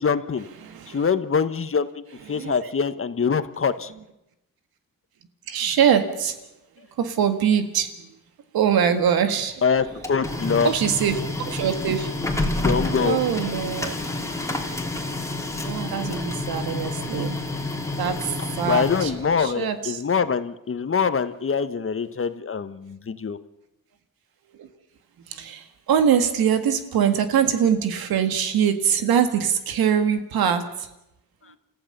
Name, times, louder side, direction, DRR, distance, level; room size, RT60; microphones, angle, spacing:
voice 1, 0.0-0.5 0.9-2.0 2.3-3.9 9.6-10.7 12.6-13.2 18.6-23.4, left 6 dB, 35° left, 12 dB, 1.2 m, -24 dB
voice 2, 0.6-1.1 2.3-2.7 5.5-6.4 7.0-8.2 8.5-9.6 10.6-12.1 13.0-14.0 15.6-17.4 18.0-19.1 19.4-20.0 24.5-24.7 25.3-30.9, right 8 dB, 85° right, 8 dB, 2.0 m, -23 dB
Printer, 9.7-19.5, left 2 dB, 10° left, 2.9 m, -29 dB
29.0 x 15.0 x 6.8 m, 0.88 s
cardioid pair, 85°, 35 cm